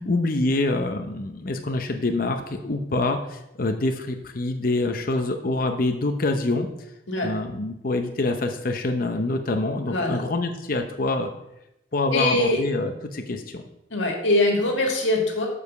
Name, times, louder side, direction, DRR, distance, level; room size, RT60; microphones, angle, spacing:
voice 1, 0.0-6.7 7.2-11.3 11.9-13.6, left 2 dB, 50° left, 5 dB, 0.7 m, -26 dB
voice 2, 9.9-10.2 12.1-12.6 13.9-15.5, left 1 dB, 85° left, 1 dB, 1.9 m, -22 dB
7.2 x 5.0 x 6.7 m, 0.87 s
head